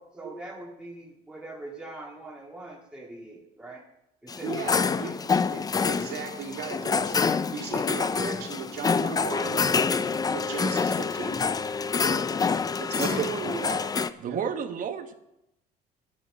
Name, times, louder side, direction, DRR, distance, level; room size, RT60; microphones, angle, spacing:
voice 1, 0.0-3.8 4.2-5.3, right 2 dB, 5° right, -3 dB, 2.2 m, -43 dB
sound 1, 4.3-14.1, left 5 dB, 20° left, 0.5 m, -27 dB
voice 2, 4.4-5.1 5.5-7.2 7.5-9.6 10.3-11.7 11.9-12.2 12.8-13.9 14.3-14.4, right 5 dB, 75° right, 0 dB, 2.8 m, -36 dB
voice 3, 13.0-13.3 14.2-15.1, right 7 dB, 50° right, 9 dB, 1.1 m, -31 dB
8.9 x 8.2 x 7.0 m, 0.85 s
cardioid pair, 110°, 17 cm